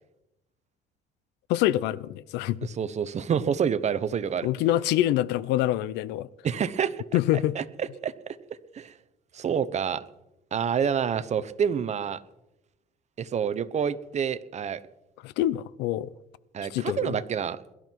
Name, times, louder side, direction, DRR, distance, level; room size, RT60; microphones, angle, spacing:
voice 1, 1.5-2.6 4.4-6.3 7.1-7.6 15.2-16.1 16.7-17.2, left 14 dB, 90° left, 0.6 m, -25 dB
voice 2, 2.6-4.5 6.4-7.0 7.5-8.4 8.7-8.9 9.3-10.0 10.5-12.2 13.2-14.8 16.5-17.6, right 7 dB, 40° right, 1.0 m, -28 dB
22.0 x 12.5 x 4.6 m
cardioid pair, 110°, 17 cm